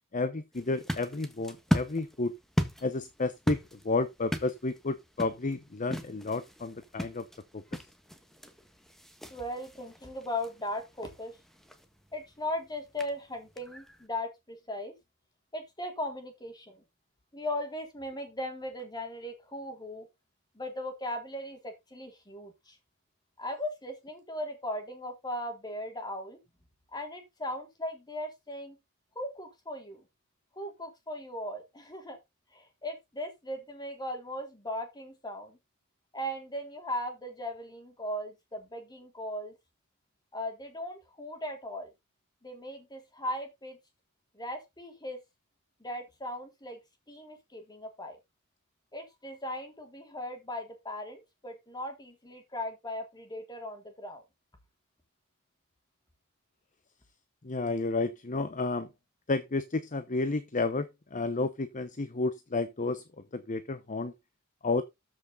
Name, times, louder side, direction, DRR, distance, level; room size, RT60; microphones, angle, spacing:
voice 1, 0.1-2.3 2.8-7.3 7.5-7.8 57.4-58.9 59.3-63.0 63.3-64.1 64.6-64.8, left 3 dB, 35° left, 0.9 m, -31 dB
sound 1, 0.5-14.1, equal, ahead, 1.6 m, -38 dB
voice 2, 9.3-11.4 12.1-14.9 15.5-16.8 17.3-20.1 20.5-22.8 23.4-26.4 26.9-28.8 29.2-30.1 30.6-32.2 32.5-35.6 36.1-39.6 40.3-41.9 42.4-43.8 44.3-45.2 45.8-46.8 47.1-48.2 48.9-54.2, left 1 dB, 20° left, 3.6 m, -38 dB
13.5 x 6.3 x 4.0 m
head